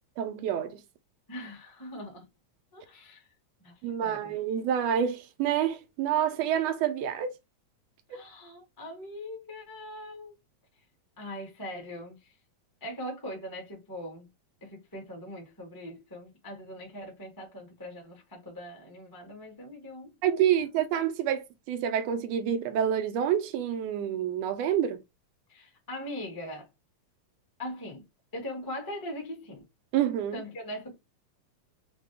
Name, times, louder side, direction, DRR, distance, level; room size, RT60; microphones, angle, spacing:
voice 1, 0.2-0.8 3.8-7.3 20.2-25.0 29.9-30.4, right 9 dB, 80° right, 1.5 m, -28 dB
voice 2, 1.3-2.3 2.7-3.3 3.6-3.7 4.0-4.3 8.1-10.4 11.2-12.3 12.8-14.3 14.6-20.7 25.5-26.7 27.6-28.0 28.3-29.6 30.3-30.9, left 1 dB, 15° left, 0.6 m, -41 dB
5.2 x 2.2 x 3.3 m
omnidirectional pair, 3.3 m